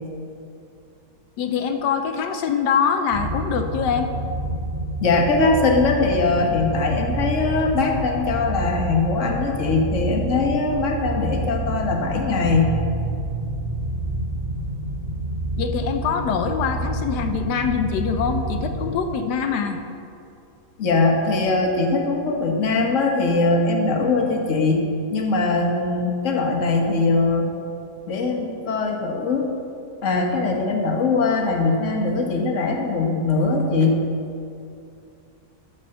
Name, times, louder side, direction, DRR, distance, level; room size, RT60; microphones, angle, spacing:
voice 1, 1.4-4.1 15.6-19.8, left 6 dB, 90° left, 6 dB, 1.3 m, -24 dB
sound 1, 3.1-19.0, right 1 dB, 10° right, 1.1 m, -28 dB
voice 2, 5.0-12.8 20.8-24.8 25.1-27.5 28.1-29.5 30.0-34.0, left 3 dB, 50° left, 1 dB, 1.5 m, -21 dB
13.5 x 4.9 x 6.6 m, 2.6 s
omnidirectional pair, 1.8 m